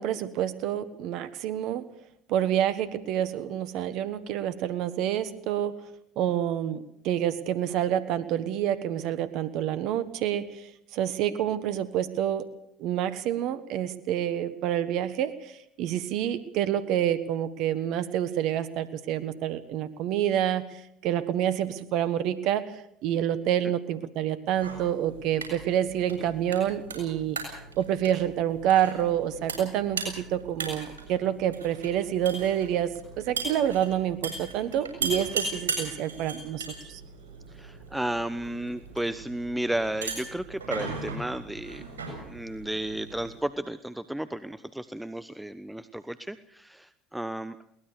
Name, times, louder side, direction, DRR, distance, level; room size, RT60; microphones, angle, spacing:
voice 1, 0.0-1.8 2.3-5.7 6.2-10.7 10.9-12.5 12.8-27.4 27.8-37.0, right 10 dB, 65° right, 13 dB, 1.4 m, -28 dB
sound 1, 24.5-43.4, right 4 dB, 90° right, 7.3 m, -38 dB
voice 2, 37.5-41.8 42.2-47.6, right 1 dB, 5° right, 12 dB, 1.1 m, -33 dB
22.5 x 19.0 x 6.8 m, 0.74 s
hypercardioid pair, 65°, 0 cm